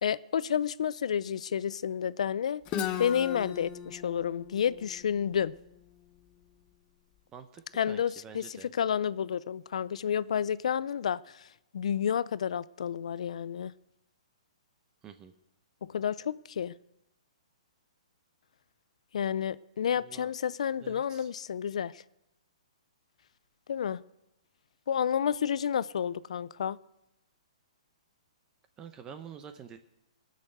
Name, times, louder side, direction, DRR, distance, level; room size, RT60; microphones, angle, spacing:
voice 1, 0.0-2.6 3.0-5.5 7.7-11.5 11.7-13.7 15.8-16.7 19.1-22.0 23.7-24.0 24.9-26.8, left 8 dB, 70° left, 0.4 m, -30 dB
Guitar, 2.6-6.4, left 9 dB, 25° left, 1.0 m, -38 dB
voice 2, 7.3-8.7 15.0-15.3 19.9-20.3 20.8-21.3 28.8-29.8, right 7 dB, 20° right, 0.7 m, -47 dB
19.0 x 6.6 x 7.9 m
hypercardioid pair, 145°, 4 cm